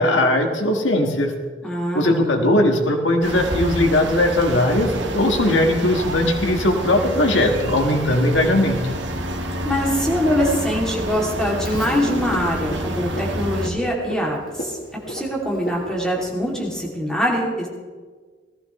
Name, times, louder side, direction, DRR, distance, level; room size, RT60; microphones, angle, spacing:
voice 1, 0.0-1.3 1.9-8.8, left 1 dB, 80° left, 3 dB, 1.7 m, -19 dB
voice 2, 1.6-2.3 9.6-14.8 15.1-17.7, equal, 5° left, -3 dB, 2.8 m, -23 dB
sound 1, 3.2-13.7, right 1 dB, 70° right, 1.5 m, -28 dB
Frog, 11.6-16.8, equal, 55° left, 2.1 m, -36 dB
18.5 x 14.5 x 3.2 m, 1.5 s
head